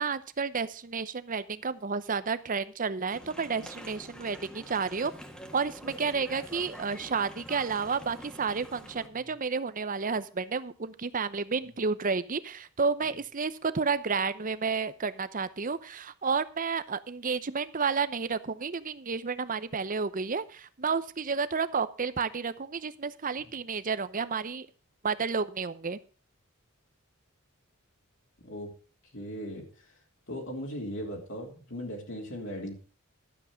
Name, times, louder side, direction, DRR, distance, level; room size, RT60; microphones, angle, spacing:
voice 1, 0.0-5.1 5.5-24.7 25.0-26.0, right 5 dB, 40° right, 14 dB, 0.8 m, -31 dB
sound 1, 3.1-9.1, equal, 5° left, 1.8 m, -46 dB
voice 2, 29.1-29.9 30.3-32.7, equal, 60° left, -1 dB, 3.2 m, -38 dB
12.5 x 8.2 x 5.0 m, 0.38 s
head